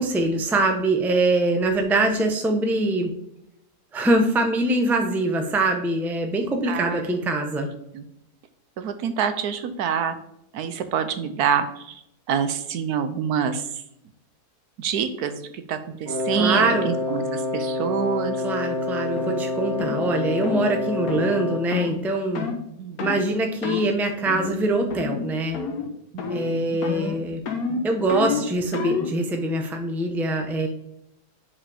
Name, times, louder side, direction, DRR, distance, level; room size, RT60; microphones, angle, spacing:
voice 1, 0.0-3.1 3.9-7.7 16.4-16.9 18.4-22.5 23.0-25.6 26.3-27.4 27.8-30.7, right 2 dB, ahead, 4 dB, 0.6 m, -23 dB
voice 2, 6.7-7.0 7.9-8.0 8.8-10.1 10.5-12.0 12.3-13.6 14.8-18.4 22.8-23.1 26.1-26.8, right 7 dB, 75° right, 9 dB, 1.2 m, -26 dB
Wind instrument woodwind instrument, 16.0-21.8, left 2 dB, 25° right, 2.4 m, -27 dB
sound 1, 19.2-19.3 19.8-20.0 20.4-20.6 21.1-21.3 21.7-21.9 22.4-22.6 23.0-23.2 23.6-23.9 24.3-24.6 24.9-25.3 25.5-25.9 26.2-26.5 26.8-29.2, left 6 dB, 70° left, 1.4 m, -29 dB
5.2 x 5.0 x 4.9 m, 0.79 s
omnidirectional pair, 1.7 m